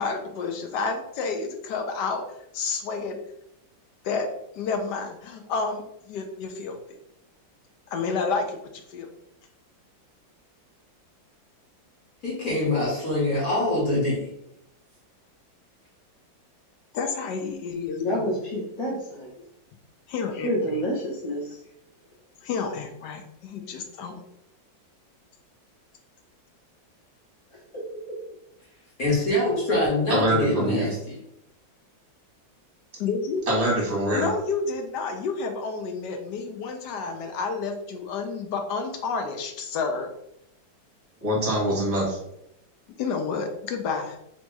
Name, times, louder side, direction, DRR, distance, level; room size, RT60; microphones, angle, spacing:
voice 1, 0.0-2.2 2.5-3.2 4.0-4.3 4.5-6.8 7.9-9.1 16.9-18.3 20.1-20.5 22.4-24.2 33.0-33.5 34.1-40.1 43.0-44.2, left 4 dB, 70° left, 1.1 m, -30 dB
voice 2, 12.2-14.3 29.0-31.1, left 1 dB, 50° left, 1.6 m, -24 dB
voice 3, 18.0-19.3 20.4-21.6 27.7-27.8, equal, 30° left, 0.6 m, -28 dB
voice 4, 30.1-30.9 33.5-34.3 41.2-42.2, right 1 dB, 20° right, 1.4 m, -24 dB
3.4 x 2.8 x 4.5 m
omnidirectional pair, 2.1 m